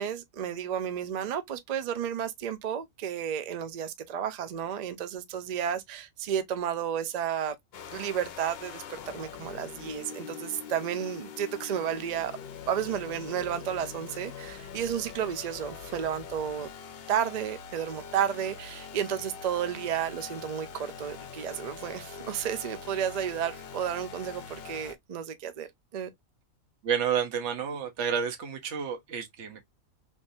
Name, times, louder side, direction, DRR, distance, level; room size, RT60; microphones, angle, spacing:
voice 1, 0.0-7.5 7.9-12.3 12.7-16.7 17.1-26.1, right 9 dB, 85° right, 0.3 m, -32 dB
sound 1, 7.7-24.9, left 7 dB, 60° left, 0.7 m, -43 dB
voice 2, 26.8-29.6, right 7 dB, 60° right, 1.1 m, -30 dB
3.5 x 2.6 x 2.5 m
omnidirectional pair, 1.5 m